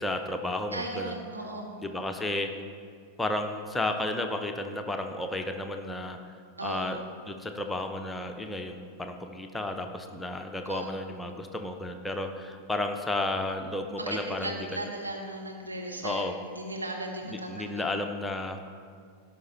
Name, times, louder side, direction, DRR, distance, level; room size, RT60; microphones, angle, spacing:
voice 1, 0.0-1.2 1.8-2.5 3.2-6.2 6.6-7.0 7.3-14.9 16.0-16.3 17.3-18.7, left 2 dB, 10° left, 4 dB, 0.7 m, -32 dB
voice 2, 0.7-1.7 6.6-7.0 10.7-10.9 14.0-17.9, right 1 dB, 80° right, -1 dB, 1.6 m, -36 dB
16.0 x 5.7 x 4.0 m, 2.1 s
figure-of-eight pair, 90°, 0 cm